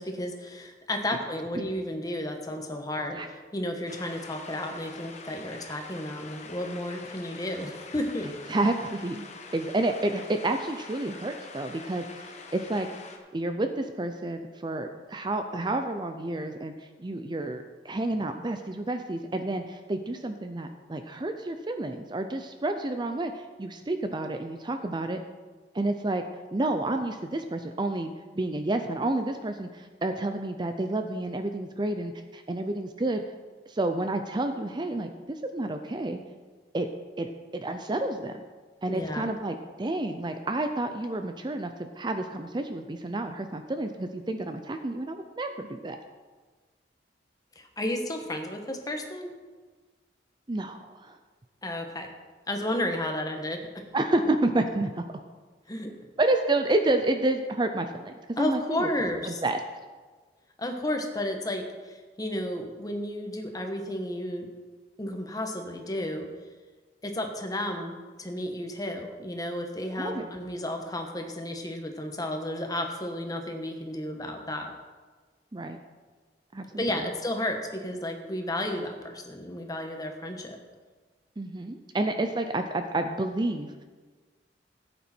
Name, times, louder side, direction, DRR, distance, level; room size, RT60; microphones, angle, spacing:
voice 1, 0.0-3.2 3.5-8.3 38.9-39.3 47.5-49.3 51.6-52.1 52.5-53.6 55.7-55.9 58.4-59.4 60.6-64.5 65.0-66.3 67.0-74.7 76.8-80.6, left 1 dB, 20° left, 4 dB, 1.3 m, -32 dB
sound 1, 3.9-13.2, left 4 dB, 40° left, 1.2 m, -45 dB
voice 2, 8.5-9.3 9.5-12.9 13.3-25.2 25.7-26.2 26.5-33.2 33.7-36.2 36.7-36.9 37.2-38.4 38.8-46.0 50.5-51.2 53.9-55.0 56.2-58.9 59.3-59.6 70.0-70.3 75.5-75.8 76.5-76.9 81.4-83.7, right 2 dB, 25° right, 7 dB, 0.5 m, -30 dB
15.0 x 8.5 x 4.4 m, 1.4 s
head